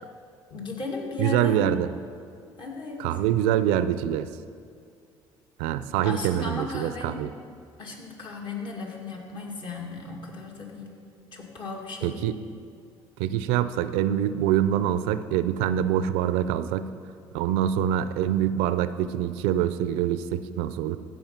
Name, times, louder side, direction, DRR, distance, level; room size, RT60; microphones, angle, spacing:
voice 1, 0.5-1.7 2.6-3.1 6.0-7.3 7.8-11.0 11.3-12.3, left 3 dB, 55° left, -1 dB, 2.3 m, -36 dB
voice 2, 1.2-1.9 3.0-4.3 5.6-7.3 12.0-12.3 13.2-16.9 17.3-21.0, right 11 dB, 90° right, 13 dB, 0.4 m, -25 dB
15.5 x 5.4 x 5.7 m, 2.3 s
supercardioid pair, 90°, 10 cm